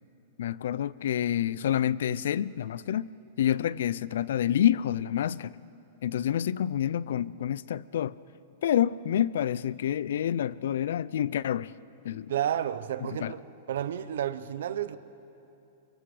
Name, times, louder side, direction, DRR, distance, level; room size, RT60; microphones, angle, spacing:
voice 1, 0.4-3.1 3.4-5.5 6.0-8.2 8.6-11.7 12.0-12.3 13.2-13.3, left 10 dB, 75° left, 0.4 m, -28 dB
voice 2, 12.3-13.4 13.7-15.0, right 10 dB, 75° right, 0.8 m, -31 dB
25.0 x 22.5 x 5.0 m
supercardioid pair, 150°, 0 cm